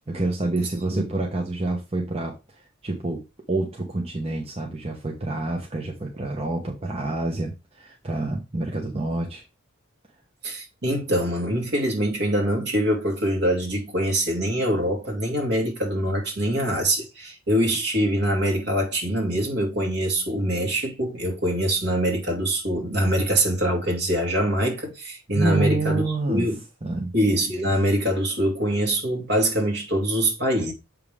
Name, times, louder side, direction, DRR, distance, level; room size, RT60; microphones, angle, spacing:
voice 1, 0.1-3.2 3.5-9.4 25.3-26.5 26.8-27.1, right 2 dB, 30° right, 1.0 m, -27 dB
voice 2, 10.4-26.0 26.3-26.6 27.1-30.7, right 1 dB, 50° right, 2.3 m, -24 dB
7.5 x 5.3 x 3.6 m
head